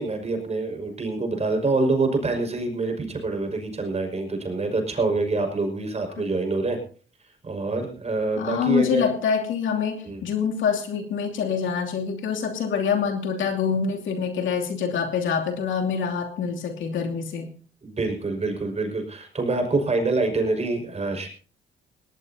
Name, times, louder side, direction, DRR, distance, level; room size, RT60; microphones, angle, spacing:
voice 1, 0.0-6.8 7.4-9.0 10.0-10.2 17.8-21.3, right 3 dB, 35° right, 4 dB, 5.5 m, -26 dB
voice 2, 8.4-17.5, left 6 dB, 75° left, 2 dB, 2.8 m, -25 dB
19.0 x 18.5 x 2.8 m, 0.40 s
cardioid pair, 90°, 20 cm